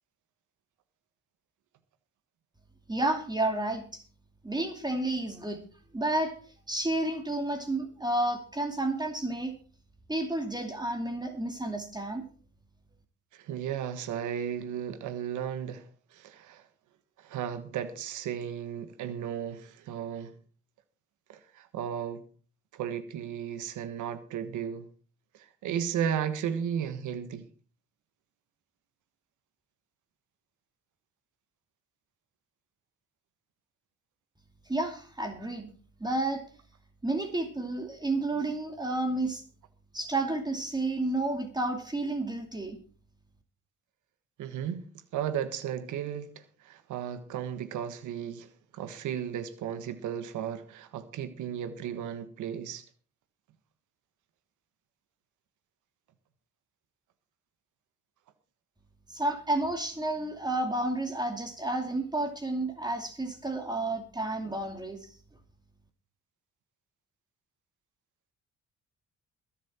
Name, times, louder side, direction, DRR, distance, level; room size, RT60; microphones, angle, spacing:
voice 1, 2.9-4.0 4.4-5.6 5.9-6.3 6.7-9.5 10.1-12.2 34.7-35.7 36.0-36.4 37.0-39.4 39.9-42.8 59.1-65.0, right 2 dB, 15° right, 2.5 m, -31 dB
voice 2, 13.3-15.9 16.1-16.6 17.2-20.3 21.3-22.2 22.7-24.9 25.3-27.5 44.4-44.8 45.1-52.8, right 9 dB, 80° right, 1.4 m, -35 dB
22.0 x 7.5 x 4.3 m
cardioid pair, 90°, 30 cm